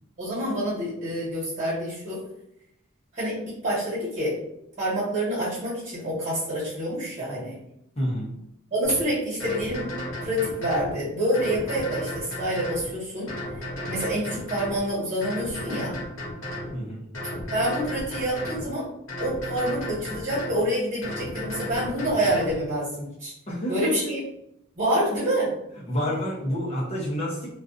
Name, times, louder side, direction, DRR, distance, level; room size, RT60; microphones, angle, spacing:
voice 1, 0.2-2.2 3.1-4.3 4.8-7.6 8.7-9.9 10.2-13.3 13.8-16.0 17.5-18.9 19.2-23.3 23.7-24.2 24.7-25.5, right 1 dB, 35° right, -8 dB, 1.3 m, -27 dB
voice 2, 8.0-8.4 16.7-17.1 23.5-24.1 25.9-27.6, equal, 30° left, -4 dB, 0.7 m, -28 dB
sound 1, 8.8-9.0 9.4-10.9 11.3-12.9 13.3-14.8 15.2-16.7 17.1-18.7 19.1-20.6 21.0-22.6, left 1 dB, 75° left, 0.9 m, -34 dB
2.5 x 2.3 x 2.4 m, 0.79 s
head